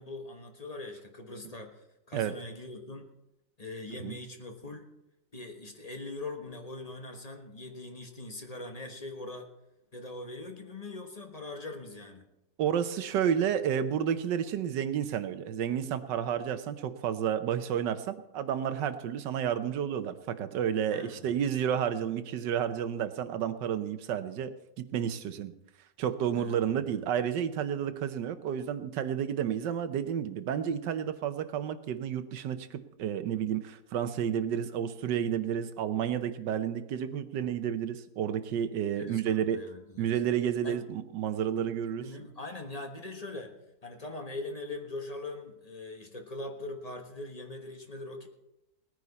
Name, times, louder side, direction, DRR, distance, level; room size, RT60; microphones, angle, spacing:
voice 1, 0.0-3.1 3.6-4.9 5.3-9.5 9.9-12.3 20.9-21.4 26.3-27.0 38.9-40.2 40.6-40.8 41.8-43.5 43.8-48.3, left 2 dB, 25° left, 3 dB, 1.1 m, -42 dB
voice 2, 12.6-25.5 26.0-39.6 40.0-42.1, right 9 dB, 75° right, 11 dB, 1.4 m, -31 dB
19.0 x 9.8 x 4.1 m, 0.92 s
omnidirectional pair, 2.0 m